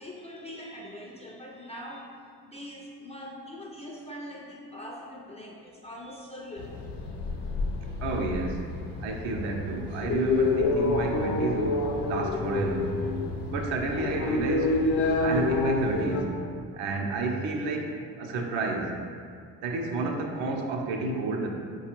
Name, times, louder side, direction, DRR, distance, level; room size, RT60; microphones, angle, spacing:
voice 1, 0.0-2.1 2.4-6.8, equal, 15° left, -3 dB, 0.3 m, -42 dB
sound 1, 6.6-16.2, left 3 dB, 60° left, 0.6 m, -28 dB
voice 2, 8.0-8.6 9.0-13.0 13.5-14.8 15.2-16.3 16.7-19.0 19.6-21.5, right 3 dB, 70° right, 2 dB, 0.6 m, -30 dB
4.1 x 2.3 x 2.9 m, 2.1 s
hypercardioid pair, 50°, 47 cm